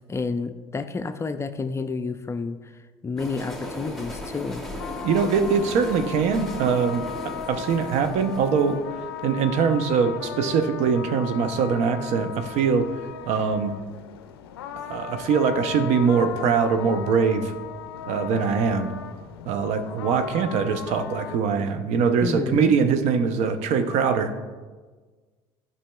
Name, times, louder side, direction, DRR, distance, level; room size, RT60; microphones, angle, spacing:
voice 1, 0.1-2.7 3.0-4.7 22.2-22.7, left 4 dB, 20° left, 9 dB, 0.4 m, -30 dB
sound 1, 3.2-10.2, left 1 dB, ahead, 1.4 m, -37 dB
sound 2, 4.8-21.4, left 8 dB, 90° left, 0.4 m, -37 dB
voice 2, 5.0-8.8 9.2-12.9 13.2-13.7 14.9-17.5 18.1-18.9 19.5-24.3, right 6 dB, 65° right, 8 dB, 0.7 m, -22 dB
11.5 x 5.5 x 2.3 m, 1.4 s
hypercardioid pair, 75°, 12 cm